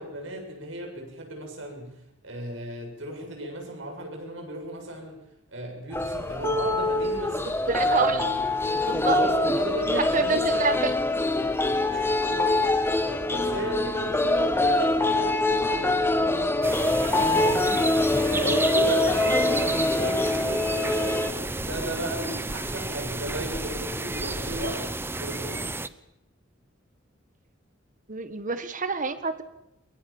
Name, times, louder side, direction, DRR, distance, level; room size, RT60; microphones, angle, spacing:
voice 1, 0.0-1.9 2.2-5.2 5.5-7.4 7.8-8.4 9.1-10.4 11.9-16.7 17.2-17.9 18.2-24.8 25.2-25.6, right 1 dB, 75° right, 2 dB, 7.6 m, -35 dB
sound 1, 5.9-21.3, left 2 dB, 10° left, 1.5 m, -24 dB
voice 2, 7.4-8.3 8.9-9.5 9.9-10.9 18.5-18.7 28.1-29.4, right 4 dB, 45° right, 11 dB, 1.7 m, -28 dB
sound 2, 16.6-25.9, right 2 dB, 10° right, 0.8 m, -31 dB
22.5 x 22.5 x 7.4 m, 0.83 s
head